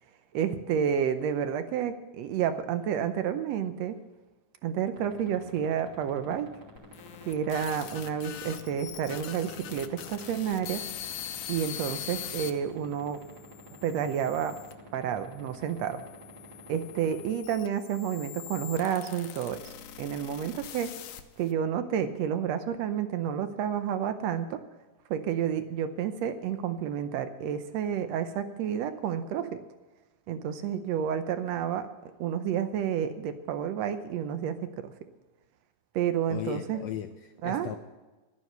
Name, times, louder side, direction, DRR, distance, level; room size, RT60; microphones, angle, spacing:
voice 1, 0.3-4.0 4.6-6.5 7.2-10.8 11.5-13.2 13.8-14.6 14.9-16.0 16.7-19.7 20.0-20.9 21.4-24.6 25.1-29.5 30.3-31.9 32.2-34.9 35.9-36.8 37.4-37.7, right 8 dB, 75° right, 10 dB, 1.5 m, -30 dB
sound 1, 5.0-17.3, right 2 dB, 30° right, 3.0 m, -48 dB
sound 2, 6.8-12.5 13.2-14.7 15.5-21.5, left 10 dB, 70° left, 2.0 m, -42 dB
voice 2, 36.3-37.8, left 11 dB, 85° left, 7 dB, 1.5 m, -37 dB
12.5 x 9.5 x 6.7 m, 1.2 s
omnidirectional pair, 3.8 m